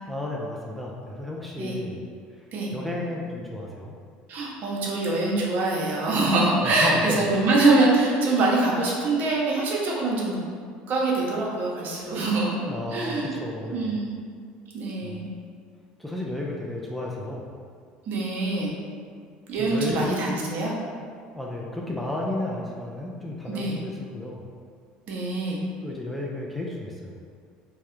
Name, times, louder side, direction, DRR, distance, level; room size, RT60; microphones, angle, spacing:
voice 1, 0.1-2.0 2.7-4.0 6.6-7.3 12.7-14.0 15.0-15.4 16.0-17.5 19.6-20.2 21.3-24.5 25.8-27.2, left 2 dB, 5° left, -3 dB, 0.3 m, -33 dB
voice 2, 4.3-10.4 10.9-12.6 12.9-13.3 13.7-14.0 14.7-15.2 18.1-18.7 19.5-20.7 23.5-23.8 25.1-25.6, right 2 dB, 55° right, -3 dB, 0.6 m, -24 dB
2.3 x 2.0 x 2.9 m, 2.2 s
supercardioid pair, 95°, 3 cm